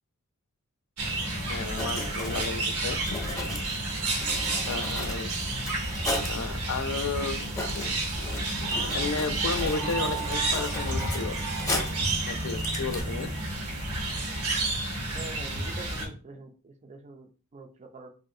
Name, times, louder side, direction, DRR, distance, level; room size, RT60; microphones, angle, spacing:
sound 1, 1.0-16.1, right 2 dB, 90° right, 1.0 m, -30 dB
Writing, 1.4-1.5 1.7-6.4 7.0-7.1 7.3-12.1 12.5-13.0, left 2 dB, 15° left, 0.7 m, -36 dB
voice 1, 1.5-3.2 4.7-5.3 6.3-7.4 7.7-7.9 8.9-11.4 12.3-13.3, left 4 dB, 65° left, 9 dB, 0.4 m, -33 dB
sound 2, 8.6-12.8, right 6 dB, 70° right, 0.8 m, -39 dB
voice 2, 15.1-18.1, right 3 dB, 30° right, 6 dB, 0.4 m, -45 dB
3.2 x 2.5 x 2.6 m, 0.37 s
head